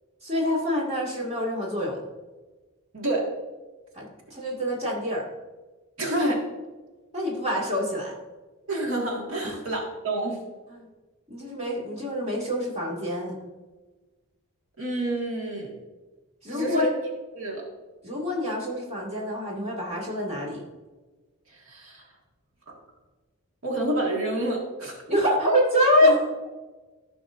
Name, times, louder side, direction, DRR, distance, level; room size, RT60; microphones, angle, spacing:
voice 1, 0.2-2.0 3.9-5.2 7.1-8.1 9.4-9.6 10.7-10.9 11.3-13.3 16.4-16.9 18.0-20.6 25.1-26.3, left 1 dB, 30° right, -3 dB, 2.0 m, -26 dB
voice 2, 2.9-3.3 6.0-6.4 8.7-10.4 14.8-15.7 16.5-16.9 17.4-17.6 21.7-22.0 22.7-22.8 23.6-24.9 26.0-26.1, right 1 dB, 80° right, -1 dB, 1.8 m, -28 dB
15.0 x 6.0 x 2.5 m, 1.2 s
head